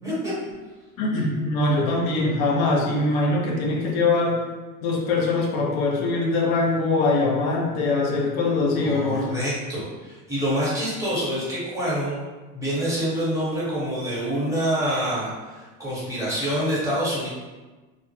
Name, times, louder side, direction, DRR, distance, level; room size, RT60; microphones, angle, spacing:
voice 1, 0.0-0.3 8.8-12.2 12.5-17.3, equal, 5° right, -8 dB, 1.1 m, -26 dB
voice 2, 1.0-4.4 4.8-9.3, left 3 dB, 80° left, -1 dB, 0.7 m, -22 dB
2.4 x 2.1 x 2.8 m, 1.2 s
hypercardioid pair, 95°, 42 cm